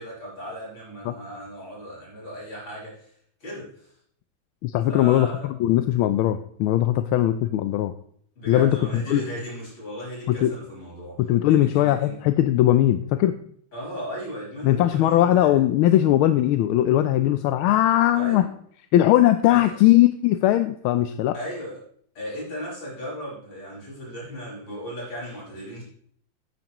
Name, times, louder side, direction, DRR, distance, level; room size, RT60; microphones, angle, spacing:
voice 1, 0.0-3.1 3.4-3.9 4.9-5.5 8.4-11.2 11.5-12.2 13.7-15.6 18.1-18.4 19.5-19.8 21.3-21.8 22.1-25.8, equal, 65° left, -6 dB, 6.5 m, -36 dB
voice 2, 4.6-7.9 8.5-9.2 10.3-10.5 11.2-13.3 14.6-18.4 18.9-21.3, left 13 dB, 90° left, 10 dB, 1.4 m, -20 dB
13.5 x 9.4 x 3.0 m, 0.63 s
omnidirectional pair, 2.3 m